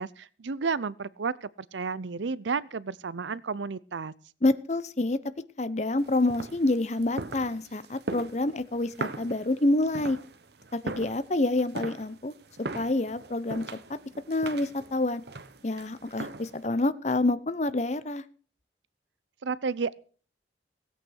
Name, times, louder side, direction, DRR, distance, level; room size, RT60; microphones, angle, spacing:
voice 1, 0.0-4.1 19.4-20.0, right 5 dB, 85° right, 0.6 m, -32 dB
voice 2, 4.4-5.2 5.6-10.2 10.7-12.3 12.7-13.6 14.3-15.2 15.6-18.2, left 2 dB, 40° left, 0.8 m, -27 dB
sound 1, 6.0-16.7, right 3 dB, 65° right, 1.0 m, -40 dB
16.5 x 8.5 x 6.4 m
head